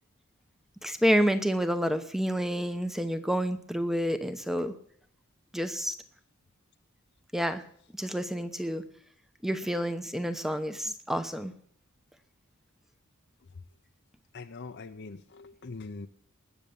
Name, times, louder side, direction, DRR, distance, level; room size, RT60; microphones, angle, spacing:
voice 1, 0.8-4.7 5.5-5.9 7.3-7.6 8.0-8.8 9.4-11.5, equal, ahead, 10 dB, 0.8 m, -29 dB
voice 2, 14.3-16.1, left 3 dB, 50° left, 7 dB, 0.6 m, -42 dB
19.5 x 6.9 x 7.0 m, 0.64 s
head